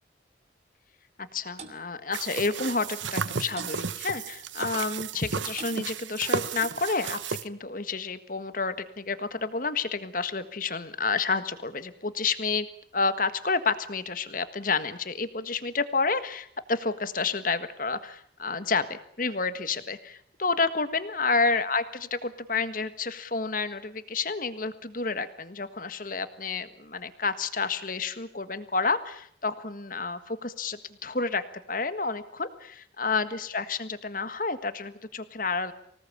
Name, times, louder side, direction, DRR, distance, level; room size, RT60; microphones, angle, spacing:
voice 1, 1.2-12.7 12.9-31.4 31.7-35.7, left 4 dB, 45° left, 12 dB, 1.7 m, -30 dB
Clock, 1.6-1.8 2.6-2.8 3.6-3.8 4.6-4.8 5.6-5.8 6.6-6.9, right 4 dB, 35° right, 2.8 m, -43 dB
sound 1, 2.1-7.5, right 5 dB, 85° right, 1.0 m, -33 dB
25.5 x 18.5 x 8.6 m, 0.65 s
head